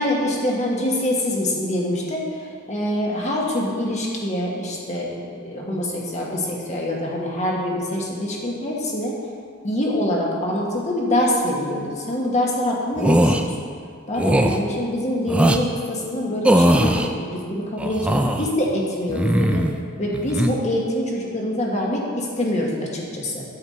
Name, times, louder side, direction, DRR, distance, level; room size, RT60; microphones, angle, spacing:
voice 1, 0.0-9.1 9.6-13.5 14.1-19.6 20.0-23.4, left 1 dB, 35° left, -3 dB, 1.5 m, -25 dB
sound 1, 13.0-13.4 14.2-14.6 15.3-15.6 16.4-17.1 17.8-18.5 19.1-19.8 20.1-20.5, right 1 dB, 5° right, 0.4 m, -19 dB
9.4 x 8.0 x 4.3 m, 2.3 s
head